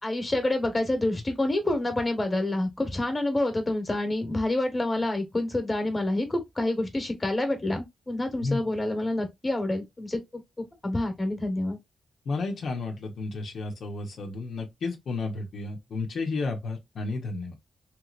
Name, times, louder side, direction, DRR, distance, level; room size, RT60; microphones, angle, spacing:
voice 1, 0.0-10.2 10.6-11.8, left 1 dB, 20° left, 1.2 m, -28 dB
voice 2, 12.3-17.5, left 3 dB, 70° left, 0.8 m, -32 dB
3.3 x 3.1 x 2.4 m
wide cardioid pair, 120°, 0 cm